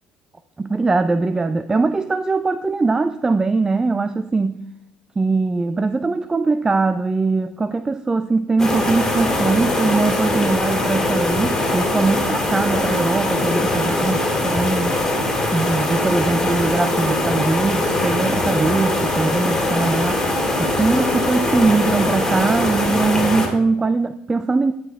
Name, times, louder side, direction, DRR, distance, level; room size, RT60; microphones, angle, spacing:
voice 1, 0.6-4.6 5.2-15.0 15.5-20.3 20.6-24.7, right 3 dB, 20° right, 12 dB, 0.4 m, -21 dB
sound 1, 8.6-23.5, left 1 dB, 10° left, 2.6 m, -21 dB
11.0 x 5.5 x 3.4 m, 0.90 s
supercardioid pair, 80°, 3 cm